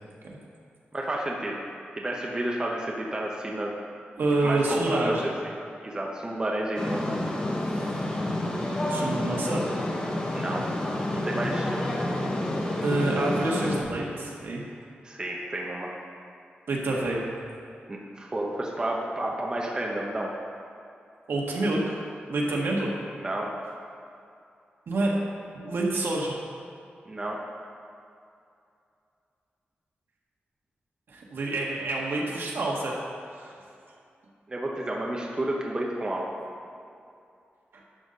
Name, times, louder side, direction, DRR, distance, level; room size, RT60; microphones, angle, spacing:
voice 1, 0.9-1.6 2.0-3.7 4.4-5.5 5.8-7.1 10.3-10.7 11.1-12.0 15.0-15.9 17.9-20.3 23.2-23.5 27.1-27.4 34.5-36.2, right 1 dB, 20° right, -2 dB, 0.9 m, -31 dB
voice 2, 4.2-5.2 7.7-8.0 8.9-9.7 12.8-14.6 16.7-17.3 21.3-22.0 22.3-22.9 24.9-25.2 25.5-26.3 31.1-32.9 33.3-33.5 37.7-37.8, right 2 dB, 75° right, -3 dB, 1.6 m, -27 dB
sound 1, 6.8-13.8, left 1 dB, 20° left, 1.0 m, -29 dB
12.0 x 4.2 x 6.5 m, 2.5 s
wide cardioid pair, 175°, 4 cm